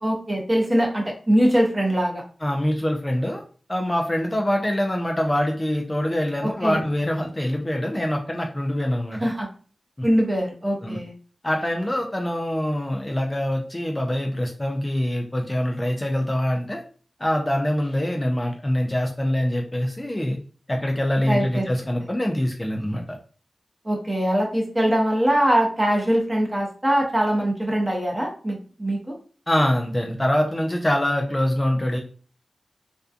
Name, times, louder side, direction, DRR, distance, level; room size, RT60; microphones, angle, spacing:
voice 1, 0.0-2.2 6.4-6.8 9.2-9.5 10.0-11.1 21.3-21.6 23.8-29.2, equal, 20° right, -1 dB, 0.8 m, -22 dB
voice 2, 2.4-3.4 3.7-9.2 10.0-10.1 10.8-11.0 11.4-16.8 17.2-20.4 20.7-23.0 29.5-32.0, left 1 dB, 20° left, 1 dB, 0.4 m, -24 dB
2.5 x 2.2 x 2.4 m, 0.40 s
wide cardioid pair, 65°, 0 cm